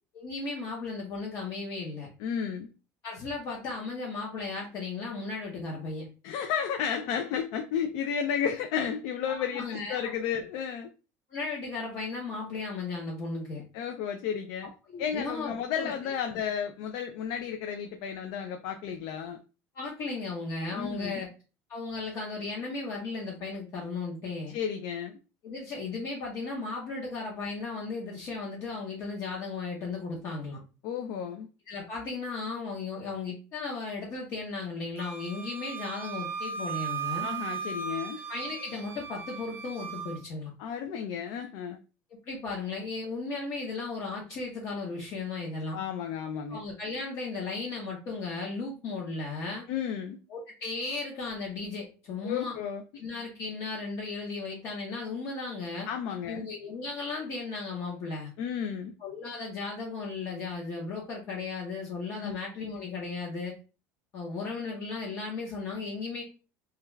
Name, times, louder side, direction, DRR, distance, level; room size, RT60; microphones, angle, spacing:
voice 1, 0.1-2.1 3.0-6.1 9.3-10.1 11.3-13.6 14.9-16.4 19.7-21.3 21.7-24.6 25.4-30.6 31.7-37.3 38.3-40.5 42.3-45.8 46.5-49.7 50.3-52.6 52.9-55.9 56.3-58.3 59.0-63.6 64.1-66.2, left 3 dB, 45° left, -3 dB, 0.7 m, -36 dB
voice 2, 2.2-2.7 6.2-10.9 13.7-14.7 15.0-19.4 20.7-21.2 24.5-25.1 30.8-31.5 37.2-38.2 40.6-41.8 45.7-46.6 49.7-50.2 52.2-53.0 55.9-56.5 58.4-58.9 62.2-62.4, left 8 dB, 70° left, 5 dB, 0.3 m, -33 dB
Wind instrument woodwind instrument, 35.0-40.2, right 6 dB, 35° right, 0.5 m, -37 dB
2.3 x 2.3 x 3.0 m, 0.32 s
cardioid pair, 155°, 7 cm